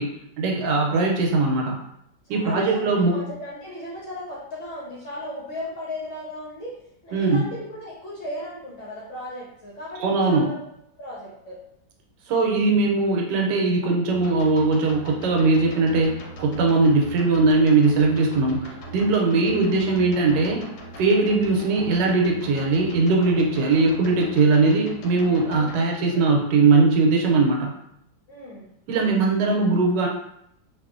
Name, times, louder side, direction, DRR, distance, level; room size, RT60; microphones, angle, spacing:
voice 1, 0.0-1.8 2.3-3.2 7.1-7.4 10.0-10.5 12.3-20.6 21.0-27.7 28.9-30.1, right 3 dB, 80° right, 0 dB, 1.2 m, -20 dB
voice 2, 2.2-2.8 3.1-6.7 7.0-10.6 11.0-11.6 19.3-19.7 23.6-23.9 25.5-26.3 28.3-28.6, left 1 dB, 60° left, -6 dB, 0.8 m, -36 dB
sound 1, 14.1-25.8, right 1 dB, 90° left, 1.3 m, -40 dB
2.8 x 2.4 x 2.4 m, 0.77 s
omnidirectional pair, 1.9 m